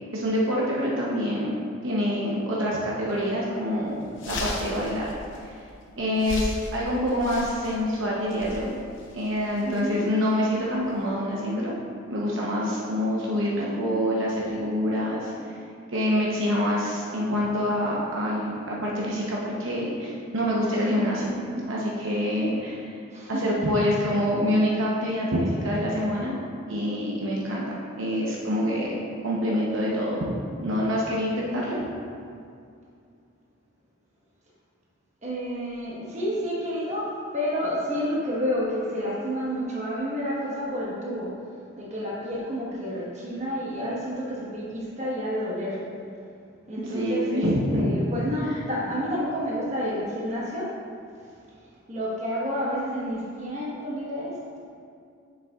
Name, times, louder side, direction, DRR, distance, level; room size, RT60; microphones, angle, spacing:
voice 1, 0.1-1.5 1.8-5.1 5.4-5.6 6.0-8.7 9.1-11.7 12.1-15.6 15.9-21.3 21.7-22.9 23.3-26.4 26.7-29.0 29.2-30.2 30.6-31.8 46.8-47.8, equal, 65° right, -5 dB, 0.9 m, -26 dB
sound 1, 3.1-3.2 3.6-3.7 4.0-11.0, left 1 dB, 60° left, 0.8 m, -37 dB
voice 2, 9.6-10.0 23.1-23.4 31.5-31.8 35.2-37.1 37.3-41.3 41.8-45.8 46.7-47.4 47.7-50.7 51.9-54.4, equal, 30° right, -6 dB, 1.3 m, -30 dB
7.6 x 6.7 x 2.4 m, 2.4 s
head